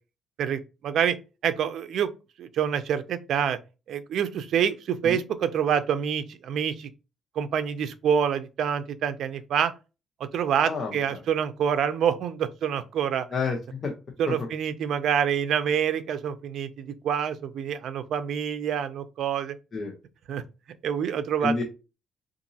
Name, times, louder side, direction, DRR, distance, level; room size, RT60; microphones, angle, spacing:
voice 1, 0.4-1.2 1.4-2.1 2.4-3.6 3.9-6.9 7.4-9.7 10.3-13.3 14.2-19.5 20.3-20.4 20.8-21.6, right 8 dB, 70° right, 0.5 m, -26 dB
voice 2, 10.6-11.2 13.3-13.9 14.3-14.5 19.7-19.9 21.4-21.6, left 4 dB, 45° left, 0.9 m, -29 dB
4.0 x 2.6 x 2.7 m
cardioid pair, 90°, 0 cm